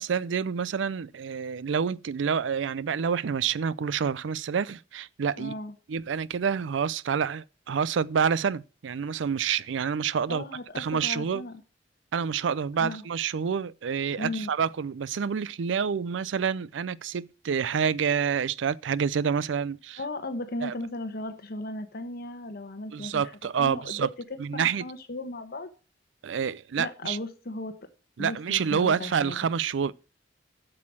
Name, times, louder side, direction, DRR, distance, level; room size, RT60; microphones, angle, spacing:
voice 1, 0.0-5.5 5.9-11.5 12.1-20.1 20.6-20.8 22.9-24.9 26.2-27.2 28.2-29.9, right 6 dB, 80° right, 0.4 m, -28 dB
voice 2, 5.3-5.7 10.3-11.6 12.8-13.0 14.2-14.5 20.0-23.2 23.6-24.1 24.5-25.7 26.8-27.8 28.2-29.4, left 2 dB, 55° left, 1.1 m, -36 dB
8.4 x 6.5 x 7.3 m
head